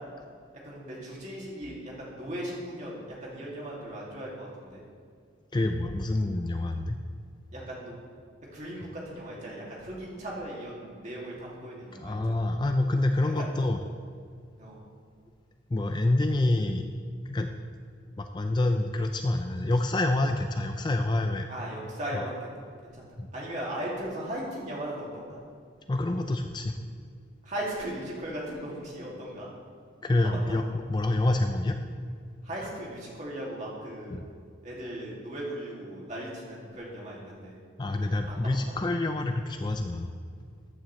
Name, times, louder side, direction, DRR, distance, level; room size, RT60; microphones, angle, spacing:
voice 1, 0.6-4.8 7.5-7.9 8.5-12.5 13.4-13.5 14.6-14.8 21.5-22.5 22.8-23.0 23.3-25.4 27.4-29.5 30.3-30.6 32.4-34.2 34.6-37.6 38.3-38.7, right 1 dB, 35° right, -4 dB, 2.4 m, -37 dB
voice 2, 5.5-7.0 12.0-13.8 15.7-16.9 17.3-17.5 18.2-21.5 22.1-22.2 23.2-23.3 25.9-26.7 30.0-30.6 30.9-31.8 34.1-34.2 37.8-40.1, left 2 dB, 20° left, 6 dB, 0.4 m, -27 dB
14.0 x 9.1 x 3.2 m, 2.2 s
head